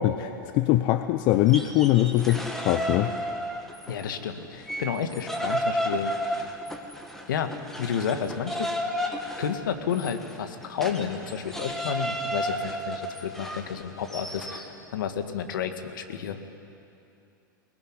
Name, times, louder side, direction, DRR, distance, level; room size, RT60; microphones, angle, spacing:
voice 1, 0.0-3.1, left 14 dB, 45° left, 10 dB, 0.8 m, -22 dB
sound 1, 1.3-4.1 4.4-14.7, equal, 5° left, 2.3 m, -32 dB
voice 2, 3.9-6.5 7.3-7.5 7.8-8.7 9.4-16.4, left 8 dB, 65° left, 7 dB, 1.9 m, -31 dB
22.0 x 19.0 x 9.9 m, 2.7 s
hypercardioid pair, 95°, 11 cm